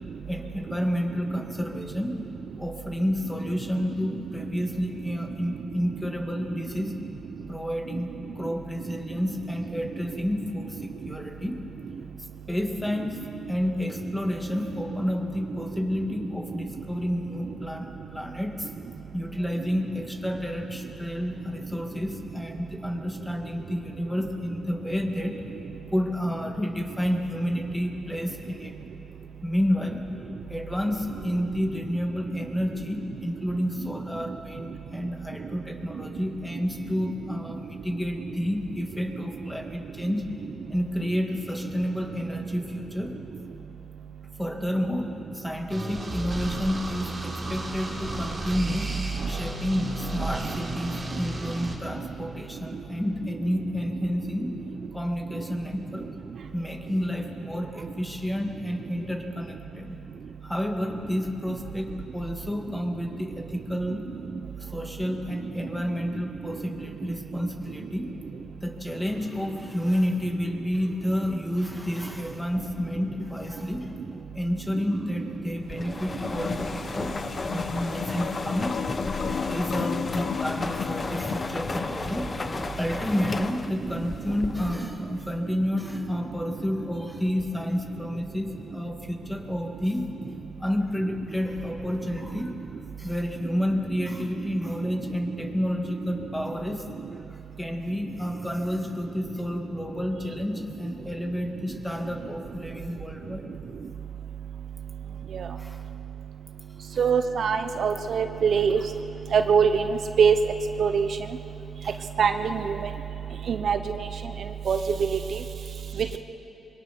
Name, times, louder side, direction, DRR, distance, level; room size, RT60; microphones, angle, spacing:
voice 1, 0.3-2.2 2.6-7.0 7.5-11.6 12.5-13.2 13.5-18.7 19.1-25.4 25.9-28.7 29.4-30.1 30.5-40.3 40.7-43.2 44.4-48.9 49.3-54.6 54.9-56.1 56.5-60.0 60.4-64.1 64.6-68.1 68.6-74.0 74.4-77.2 77.5-78.8 79.2-82.3 82.8-90.1 90.6-92.5 93.0-96.9 97.3-103.5 105.6-105.8 106.9-107.1 111.8-111.9, equal, 5° left, 3 dB, 2.1 m, -30 dB
sound 1, 45.7-51.8, right 2 dB, 35° right, 3.6 m, -33 dB
sound 2, 75.7-85.0, left 3 dB, 30° left, 0.9 m, -33 dB
sound 3, 76.2-82.5, left 7 dB, 65° left, 0.6 m, -34 dB
voice 2, 107.0-108.8 109.3-110.4 110.8-111.1 112.2-112.8 113.5-113.8 114.7-115.4, right 6 dB, 60° right, 7 dB, 1.0 m, -22 dB
26.0 x 22.5 x 6.1 m, 2.9 s
cardioid pair, 115°, 0 cm